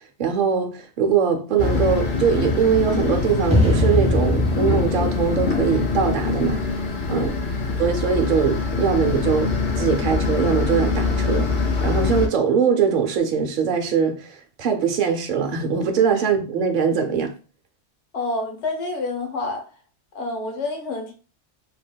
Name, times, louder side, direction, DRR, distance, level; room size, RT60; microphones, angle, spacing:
voice 1, 0.0-6.6 7.1-7.3 7.8-17.3, right 6 dB, 55° right, 0.6 m, -22 dB
sound 1, 1.6-12.3, left 4 dB, 50° left, 0.6 m, -24 dB
sound 2, 3.5-6.7, left 1 dB, 10° right, 0.3 m, -23 dB
voice 2, 18.1-19.6 20.1-21.1, left 3 dB, 75° left, 1.0 m, -28 dB
3.3 x 2.1 x 2.2 m
omnidirectional pair, 1.2 m